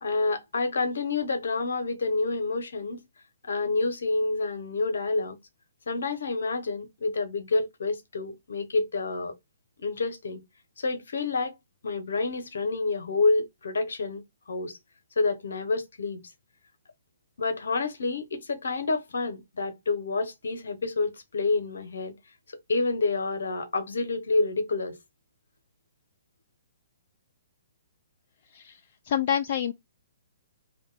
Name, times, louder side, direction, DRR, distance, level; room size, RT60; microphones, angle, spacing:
voice 1, 0.0-3.1 3.4-5.4 5.9-9.3 9.8-10.4 10.8-11.6 11.8-14.2 14.5-14.8 15.2-16.2 17.4-22.1 22.7-25.0, left 3 dB, 70° left, 0.9 m, -28 dB
voice 2, 28.4-29.7, left 9 dB, 50° left, 0.3 m, -28 dB
2.5 x 2.2 x 4.0 m
figure-of-eight pair, 130°, 0 cm